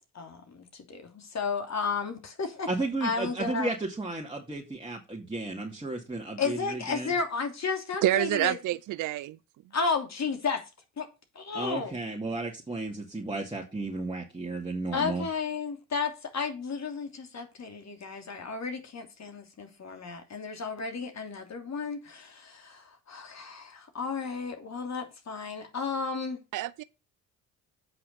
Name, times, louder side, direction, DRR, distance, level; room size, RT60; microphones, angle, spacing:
voice 1, 0.1-2.7 3.0-3.7 6.4-8.6 9.7-10.6 11.0-11.1 11.3-11.9 14.9-26.4, left 5 dB, 45° left, 2.9 m, -33 dB
voice 2, 2.7-7.1 11.5-15.3, right 2 dB, 15° right, 2.5 m, -33 dB
voice 3, 8.0-9.4 26.5-26.8, right 15 dB, 60° right, 0.6 m, -27 dB
8.4 x 5.7 x 6.9 m
hypercardioid pair, 55°, 36 cm